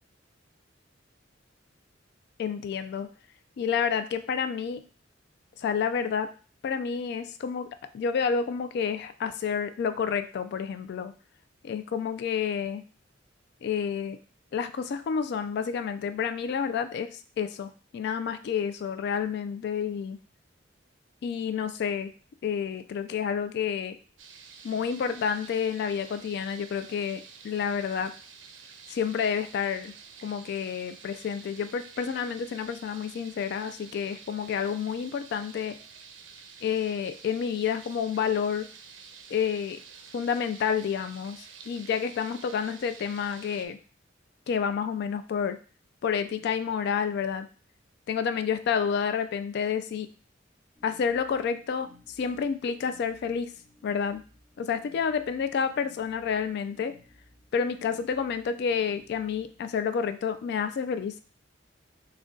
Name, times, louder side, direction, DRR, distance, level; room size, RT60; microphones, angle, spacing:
voice 1, 2.4-3.1 3.6-4.8 5.6-6.3 6.6-7.7 7.9-11.1 11.6-12.8 13.6-14.2 14.5-20.2 21.2-22.1 22.4-24.0 24.6-28.1 28.9-29.9 30.2-35.8 36.6-38.7 39.3-39.8 40.1-43.8 44.5-45.6 46.0-47.5 48.1-50.1 50.8-53.5 53.8-54.2 54.6-57.0 57.5-61.2, left 7 dB, 60° left, 11 dB, 0.3 m, -29 dB
sound 1, 24.2-43.7, right 6 dB, 75° right, 0.5 m, -49 dB
sound 2, 50.8-59.8, left 2 dB, 10° left, 0.8 m, -58 dB
3.8 x 2.2 x 3.6 m, 0.37 s
head